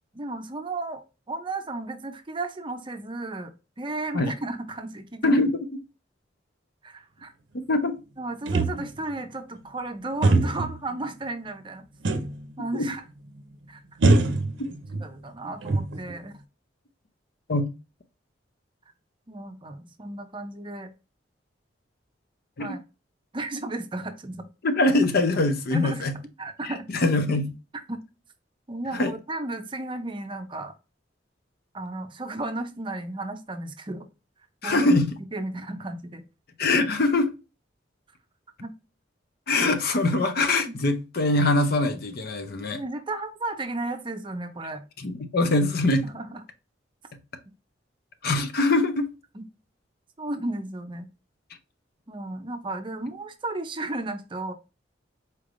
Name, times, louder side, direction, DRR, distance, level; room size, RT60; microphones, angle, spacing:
voice 1, 0.1-3.5 3.8-5.3 6.8-7.3 8.2-11.9 12.6-13.0 13.7-13.8 15.0-16.4 19.3-20.9 22.6-22.8 23.3-24.5 25.7-26.1 26.4-26.9 27.9-28.0 28.7-30.7 31.7-34.1 34.6-34.9 35.3-36.2 38.6-38.7 39.5-39.7 40.7-40.8 42.7-44.8 46.0-46.4 49.3-49.5 50.2-51.1 52.1-54.5, right 2 dB, 30° right, 0.6 m, -34 dB
voice 2, 5.2-5.6 7.7-7.9 12.7-12.9 14.6-14.7 17.5-17.7 22.6-22.7 24.6-26.1 26.9-27.5 28.9-29.1 34.6-35.1 36.6-37.3 39.5-42.8 45.0-46.1 48.2-49.1, left 2 dB, 55° left, 0.6 m, -23 dB
sound 1, 8.5-9.1 10.2-10.8 12.0-12.5 12.8-12.9 14.0-15.0 15.4-16.2, right 2 dB, 75° right, 0.6 m, -23 dB
4.3 x 3.3 x 2.5 m
head